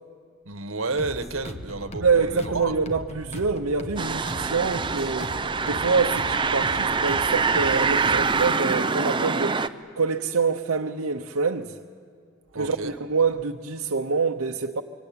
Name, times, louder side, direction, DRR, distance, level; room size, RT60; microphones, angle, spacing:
voice 1, 0.5-2.7 12.5-13.0, right 3 dB, 65° right, 1.3 m, -31 dB
sound 1, 1.0-8.5, left 1 dB, 30° left, 1.1 m, -39 dB
voice 2, 2.0-5.4 5.6-9.6 10.0-11.8 12.5-14.8, right 4 dB, 85° right, 0.9 m, -26 dB
sound 2, 4.0-9.7, right 4 dB, 20° right, 0.6 m, -25 dB
25.5 x 24.5 x 8.7 m
head